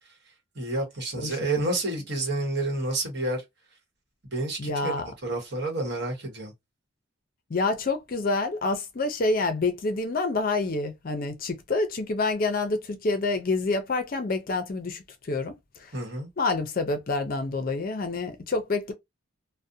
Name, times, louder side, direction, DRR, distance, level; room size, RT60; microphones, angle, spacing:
voice 1, 0.5-3.4 4.3-4.9 5.2-6.5 15.9-16.3, right 2 dB, 55° right, 1.1 m, -29 dB
voice 2, 4.6-5.1 7.5-15.5 15.8-15.9 16.4-18.9, left 3 dB, 40° left, 0.5 m, -27 dB
2.5 x 2.0 x 2.6 m
head